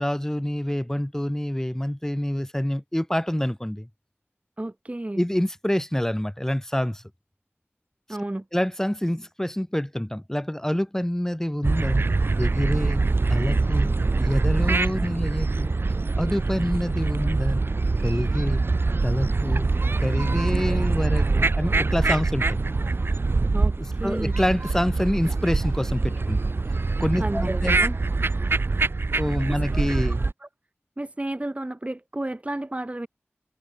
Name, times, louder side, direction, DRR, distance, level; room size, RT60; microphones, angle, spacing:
voice 1, 0.0-3.9 5.2-7.0 8.5-12.1 12.4-13.0 13.3-15.7 16.2-17.6 18.0-18.6 19.0-19.7 20.0-22.6 23.8-26.5 27.0-27.9 29.1-30.2, equal, 10° left, 1.2 m, -27 dB
voice 2, 4.6-5.3 8.1-8.4 23.5-24.4 27.2-27.8 29.5-30.5 31.0-33.1, right 1 dB, 30° right, 1.2 m, -32 dB
sound 1, 11.6-30.3, right 3 dB, 55° right, 0.4 m, -24 dB
wide cardioid pair, 50°, 5 cm